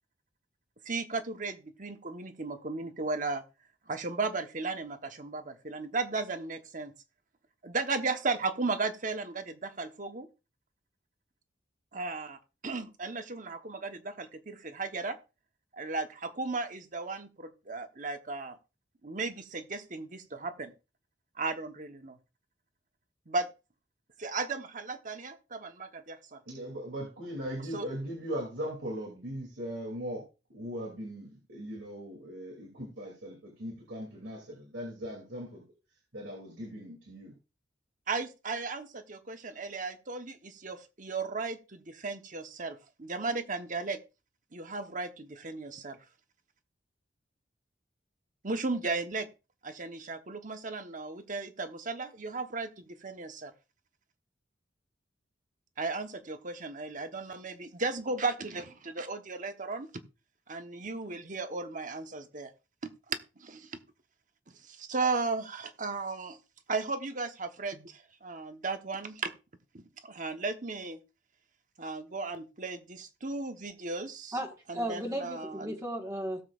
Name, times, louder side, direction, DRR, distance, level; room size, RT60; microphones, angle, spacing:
voice 1, 0.8-3.4 3.9-6.9 7.6-10.3 11.9-15.2 15.7-18.6 19.0-20.7 21.4-22.2 23.3-23.5 24.2-26.4 27.7-27.8 38.1-44.0 44.5-46.0 48.4-49.3 49.6-53.5 55.8-59.9 60.5-62.5 62.8-63.8 64.6-66.4 66.7-69.3 69.7-71.0 71.8-74.4 74.7-75.7, right 3 dB, 45° right, 7 dB, 1.1 m, -35 dB
voice 2, 26.5-30.2 30.5-35.6 36.1-37.3, equal, 85° right, -1 dB, 2.8 m, -39 dB
voice 3, 74.3-76.4, right 1 dB, 15° right, 1 dB, 1.6 m, -35 dB
17.5 x 7.4 x 2.5 m, 0.29 s
head